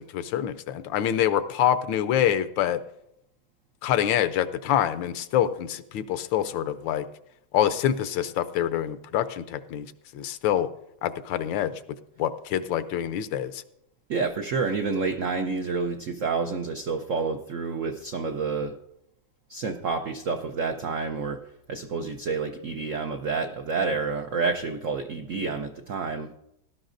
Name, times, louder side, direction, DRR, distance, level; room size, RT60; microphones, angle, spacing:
voice 1, 0.0-2.8 3.8-7.0 7.5-9.9 10.1-10.7 11.0-11.7 12.2-13.6, left 10 dB, 75° left, 12 dB, 1.3 m, -26 dB
voice 2, 14.1-18.7 19.5-21.4 21.7-26.4, right 4 dB, 80° right, 5 dB, 0.7 m, -29 dB
18.0 x 12.0 x 2.6 m, 0.80 s
omnidirectional pair, 2.2 m